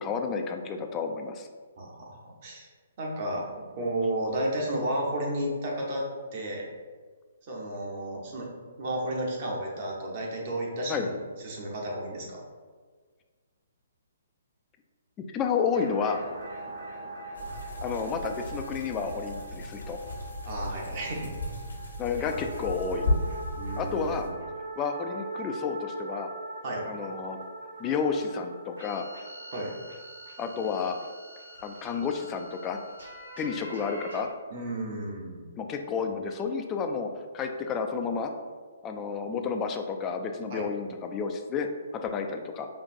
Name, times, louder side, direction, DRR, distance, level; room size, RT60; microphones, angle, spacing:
voice 1, 0.0-1.5 10.9-11.1 15.3-16.2 17.8-20.0 22.0-23.1 23.8-24.3 24.8-26.3 26.8-27.4 27.8-29.1 30.4-31.0 31.6-32.8 33.4-34.3 35.6-38.3 38.8-42.7, left 5 dB, 20° left, 4 dB, 0.3 m, -31 dB
voice 2, 1.8-2.7 3.0-3.4 3.8-6.0 6.3-6.7 7.4-8.5 8.8-12.4 20.4-21.3 23.5-24.4 26.6-26.9 29.5-29.7 34.5-35.5 40.5-40.7, right 1 dB, 40° right, -2 dB, 0.9 m, -32 dB
sound 1, 15.7-34.2, right 2 dB, 70° right, 1.3 m, -42 dB
sound 2, 17.3-24.3, left 1 dB, 70° left, 0.9 m, -35 dB
5.1 x 2.5 x 2.5 m, 1.5 s
figure-of-eight pair, 130°, 0 cm